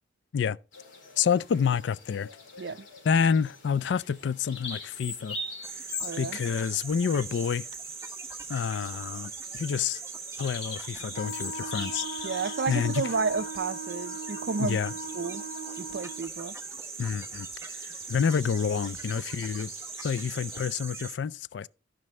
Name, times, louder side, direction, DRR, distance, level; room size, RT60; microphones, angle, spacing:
Bird vocalization bird call bird song, 0.7-20.7, left 3 dB, 80° left, 3.8 m, -44 dB
voice 1, 1.2-2.3 3.0-5.4 6.2-7.7 8.5-10.0 10.4-12.1 12.7-13.1 14.6-14.9 17.0-17.5 18.1-19.7 20.0-21.7, left 6 dB, 65° left, 0.3 m, -28 dB
sound 1, 5.6-21.2, right 5 dB, 15° right, 0.9 m, -40 dB
voice 2, 6.0-6.4 12.2-14.8 15.1-15.5 15.8-16.6, right 4 dB, 60° right, 0.5 m, -31 dB
Wind instrument woodwind instrument, 11.1-16.3, right 2 dB, 30° left, 3.5 m, -39 dB
14.5 x 5.2 x 3.2 m
head